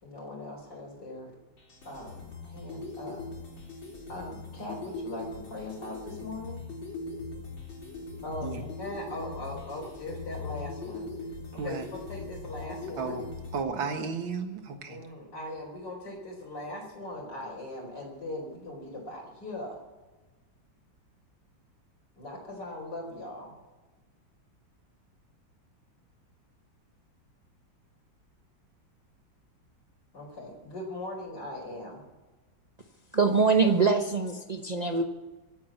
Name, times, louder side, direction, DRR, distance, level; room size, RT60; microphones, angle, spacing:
voice 1, 0.0-1.3 1.8-3.2 4.1-6.6 8.2-11.1 11.5-11.8 12.1-13.2 14.9-19.8 22.2-23.5 30.1-32.0, left 1 dB, 60° left, -5 dB, 4.3 m, -40 dB
sound 1, 1.6-13.6, left 3 dB, 80° left, 4.2 m, -40 dB
voice 2, 11.5-11.9 13.0-13.2 13.5-15.0, right 5 dB, 85° right, 6 dB, 2.3 m, -33 dB
voice 3, 33.1-35.0, right 4 dB, 30° right, 4 dB, 0.7 m, -24 dB
25.0 x 8.7 x 5.9 m, 1.2 s
omnidirectional pair, 2.1 m